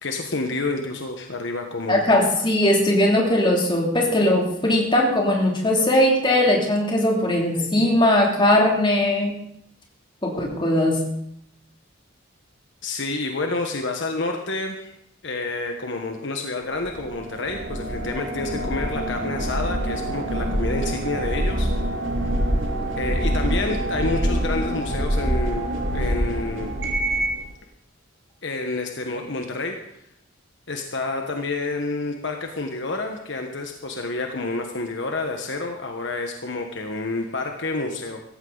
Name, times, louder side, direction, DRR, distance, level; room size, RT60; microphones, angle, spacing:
voice 1, 0.0-2.0 12.8-14.9 15.2-21.7 22.9-26.8 28.4-30.0 30.7-38.2, left 3 dB, 60° left, 3 dB, 1.3 m, -29 dB
voice 2, 1.9-9.3 10.2-11.0, left 1 dB, 25° left, -1 dB, 3.0 m, -19 dB
sound 1, 16.8-27.4, right 1 dB, 70° right, 3.0 m, -25 dB
16.5 x 14.5 x 4.0 m, 0.72 s
head